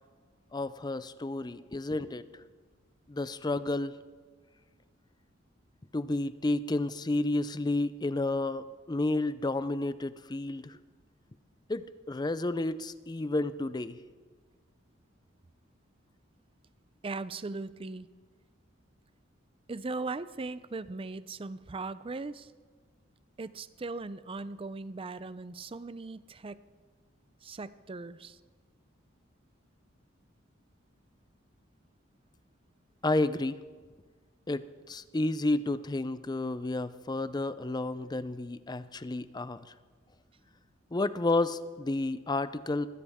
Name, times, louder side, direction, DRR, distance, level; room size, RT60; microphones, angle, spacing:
voice 1, 0.5-2.2 3.1-4.0 5.9-10.8 11.7-14.0 33.0-33.6 34.5-39.7 40.9-42.9, left 2 dB, 20° left, 14 dB, 0.5 m, -31 dB
voice 2, 17.0-18.1 19.7-22.5 23.4-26.6 27.4-28.4, right 3 dB, 30° right, 15 dB, 0.5 m, -39 dB
21.5 x 15.5 x 3.6 m, 1.5 s
head